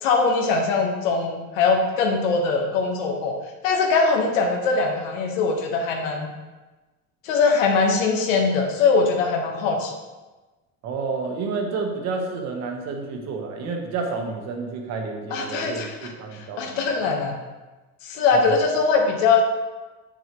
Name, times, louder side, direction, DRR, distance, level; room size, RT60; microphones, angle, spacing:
voice 1, 0.0-3.4 3.6-6.3 7.2-9.9 15.3-17.3 18.0-19.4, left 4 dB, 90° left, 2 dB, 1.3 m, -22 dB
voice 2, 10.8-15.9 16.2-16.9 18.3-18.6, right 4 dB, 45° right, 2 dB, 1.2 m, -30 dB
7.3 x 6.3 x 3.1 m, 1.2 s
cardioid pair, 150°, 38 cm